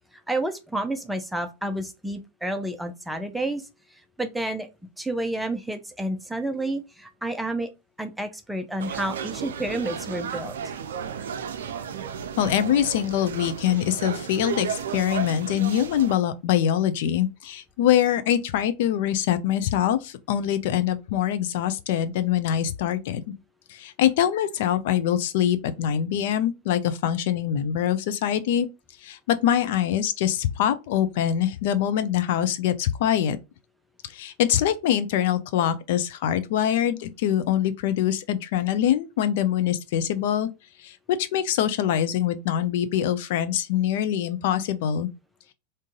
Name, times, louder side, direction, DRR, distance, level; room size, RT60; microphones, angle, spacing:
voice 1, 0.3-3.7 4.2-4.7 5.0-7.7 8.0-10.5, right 1 dB, 5° right, 0.6 m, -30 dB
sound 1, 8.8-16.1, right 7 dB, 60° right, 0.5 m, -33 dB
voice 2, 12.4-23.2 23.7-28.7 29.0-33.4 34.1-40.5 40.8-45.1, left 10 dB, 50° left, 0.4 m, -24 dB
3.7 x 2.6 x 3.7 m
figure-of-eight pair, 90°, 0 cm